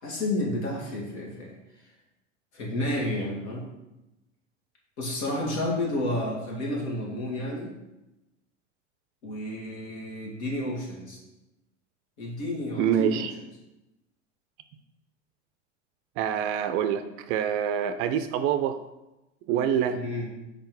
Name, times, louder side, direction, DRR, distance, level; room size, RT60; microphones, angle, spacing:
voice 1, 0.0-1.5 2.5-3.6 5.0-7.7 9.2-11.2 12.2-13.3 19.9-20.3, left 1 dB, 65° left, -2 dB, 2.2 m, -31 dB
voice 2, 12.8-13.3 16.2-18.8 19.5-20.0, right 9 dB, 40° right, 9 dB, 0.4 m, -26 dB
4.8 x 4.4 x 5.3 m, 0.96 s
hypercardioid pair, 90°, 36 cm